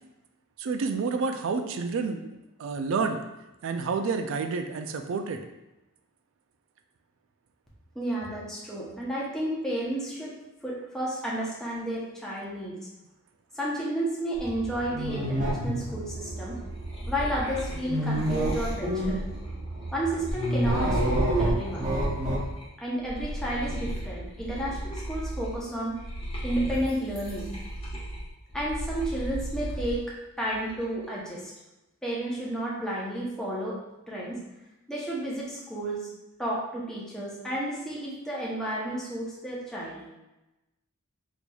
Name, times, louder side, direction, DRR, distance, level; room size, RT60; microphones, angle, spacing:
voice 1, 0.6-2.3 2.6-3.2 3.6-5.4, right 4 dB, 60° right, 6 dB, 0.3 m, -29 dB
voice 2, 7.9-10.3 10.6-12.8 13.5-16.6 17.1-19.2 19.9-21.9 22.8-26.0 26.4-27.5 28.5-30.0 30.4-31.5 32.0-33.8 34.1-34.4 34.9-36.0 36.4-40.0, right 1 dB, 5° left, -6 dB, 0.7 m, -31 dB
sound 1, 14.3-22.5, right 1 dB, 30° right, 0.8 m, -29 dB
sound 2, 16.6-22.6 23.0-30.0 30.4-31.0, equal, 25° left, 1.0 m, -36 dB
4.2 x 2.9 x 2.3 m, 0.97 s
head